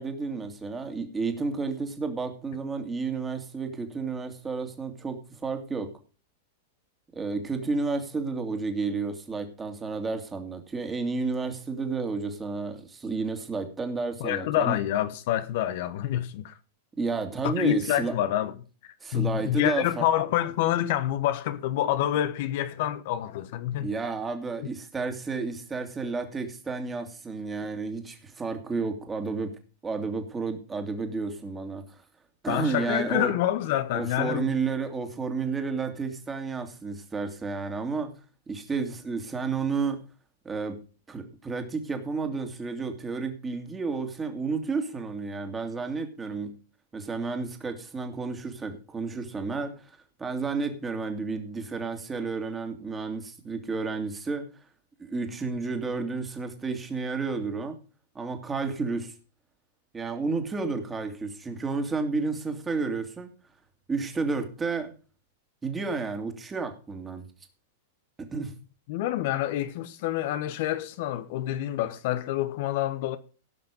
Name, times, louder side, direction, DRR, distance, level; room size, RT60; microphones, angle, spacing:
voice 1, 0.0-5.9 7.1-14.8 17.0-18.1 19.0-20.0 23.8-29.5 29.8-32.0 32.4-33.3 33.9-38.1 38.5-40.0 40.4-40.8 41.1-46.6 46.9-54.5 55.0-57.8 58.1-59.1 59.9-63.3 63.9-64.9 65.6-67.3 68.2-68.5, right 4 dB, 15° right, 2.4 m, -31 dB
voice 2, 14.2-16.5 17.4-18.5 19.1-23.9 24.6-24.7 32.5-34.5 68.9-73.2, left 12 dB, 60° left, 1.0 m, -27 dB
16.5 x 5.9 x 5.2 m
hypercardioid pair, 115°, 0 cm